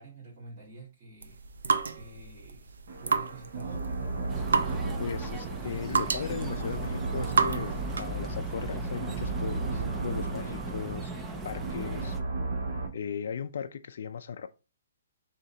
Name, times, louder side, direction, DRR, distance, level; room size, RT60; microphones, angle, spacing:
voice 1, 0.0-1.4 1.8-2.7 3.0-4.4, right 2 dB, 30° right, 1.9 m, -49 dB
sound 1, 1.2-8.2, right 5 dB, 85° right, 0.5 m, -31 dB
sound 2, 2.9-12.9, right 3 dB, 55° right, 1.3 m, -35 dB
sound 3, 4.3-12.2, right 3 dB, 10° right, 0.5 m, -38 dB
voice 2, 4.7-12.2 12.9-14.5, left 7 dB, 60° left, 0.3 m, -37 dB
3.8 x 2.8 x 4.3 m
hypercardioid pair, 160°, 0 cm